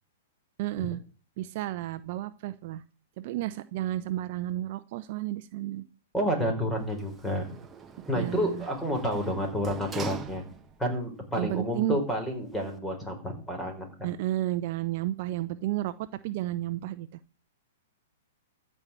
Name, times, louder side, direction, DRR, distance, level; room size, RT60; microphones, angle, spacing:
voice 1, 0.6-1.0 1.4-2.8 3.2-5.8 8.1-8.7 11.4-12.0 14.0-15.9 16.2-17.1, right 14 dB, 50° right, 12 dB, 0.8 m, -32 dB
voice 2, 6.1-7.4 8.1-10.4 10.8-14.1, equal, 5° left, 4 dB, 4.7 m, -30 dB
Sliding door, 6.8-10.9 11.4-11.5, right 6 dB, 15° right, 1.2 m, -43 dB
14.0 x 5.6 x 8.8 m, 0.40 s
hypercardioid pair, 130°, 0 cm